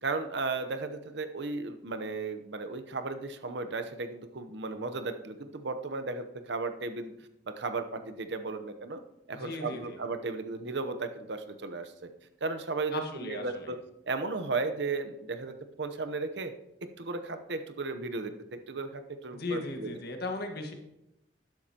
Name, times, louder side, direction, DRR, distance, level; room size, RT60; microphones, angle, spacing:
voice 1, 0.0-7.1 7.5-9.0 9.3-12.1 12.4-13.8 14.1-16.5 17.0-19.9, right 3 dB, 70° right, 8 dB, 0.9 m, -35 dB
voice 2, 9.3-10.0 12.9-13.7 19.3-20.7, left 2 dB, 60° left, 4 dB, 1.6 m, -37 dB
12.5 x 10.5 x 2.9 m, 0.88 s
head